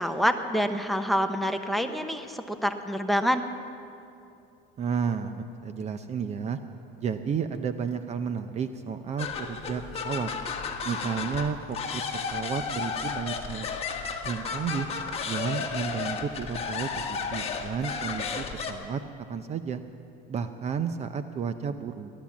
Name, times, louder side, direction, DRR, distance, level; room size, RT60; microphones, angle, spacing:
voice 1, 0.0-3.5, equal, ahead, 8 dB, 0.8 m, -27 dB
voice 2, 4.8-6.6 7.0-10.3 10.8-13.7 14.2-14.9 15.2-19.0 19.3-19.8 20.3-22.1, right 6 dB, 35° right, 10 dB, 0.6 m, -32 dB
sound 1, 9.2-18.7, left 5 dB, 30° left, 1.5 m, -33 dB
16.5 x 12.0 x 7.2 m, 2.6 s
cardioid pair, 125°, 21 cm